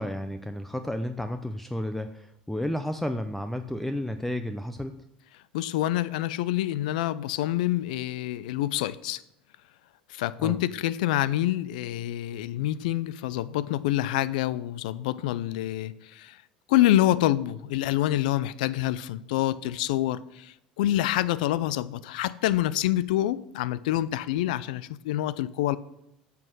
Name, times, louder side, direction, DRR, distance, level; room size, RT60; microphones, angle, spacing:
voice 1, 0.0-5.0 10.4-10.6, left 1 dB, 5° left, 0.6 m, -32 dB
voice 2, 5.5-9.2 10.1-16.4 16.7-25.8, left 14 dB, 75° left, 0.4 m, -27 dB
9.0 x 5.9 x 6.2 m
hypercardioid pair, 75°, 4 cm